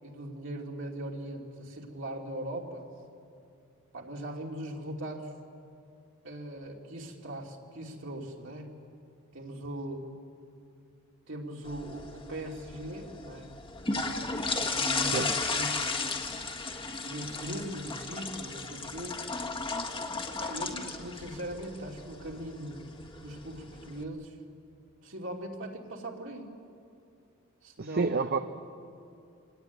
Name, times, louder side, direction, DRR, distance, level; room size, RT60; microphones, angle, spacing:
voice 1, 0.0-2.9 3.9-5.3 6.2-8.7 9.3-10.1 11.3-13.5 13.9-15.7 17.0-19.2 20.4-22.8 23.2-24.4 25.0-26.5 27.6-28.4, right 1 dB, 65° right, 0 dB, 3.0 m, -40 dB
sound 1, 11.6-24.0, left 3 dB, 25° left, 1.6 m, -35 dB
voice 2, 27.8-28.4, right 4 dB, 50° right, 8 dB, 0.7 m, -28 dB
26.5 x 18.5 x 9.4 m, 2.5 s
head